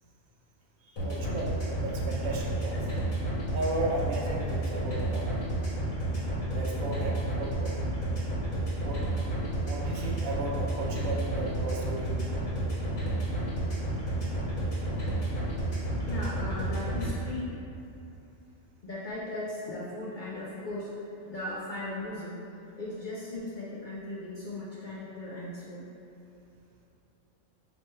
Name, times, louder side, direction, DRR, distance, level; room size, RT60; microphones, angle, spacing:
voice 1, 0.8-2.9 3.5-5.4 6.5-7.7 8.8-9.2 9.6-12.2 14.2-14.6, right 2 dB, 90° right, -1 dB, 1.1 m, -35 dB
sound 1, 1.0-17.1, right 1 dB, 85° left, 1.8 m, -31 dB
voice 2, 16.0-17.5 18.8-25.9, left 2 dB, 55° left, -7 dB, 0.5 m, -37 dB
3.2 x 3.0 x 4.3 m, 2.8 s
omnidirectional pair, 1.4 m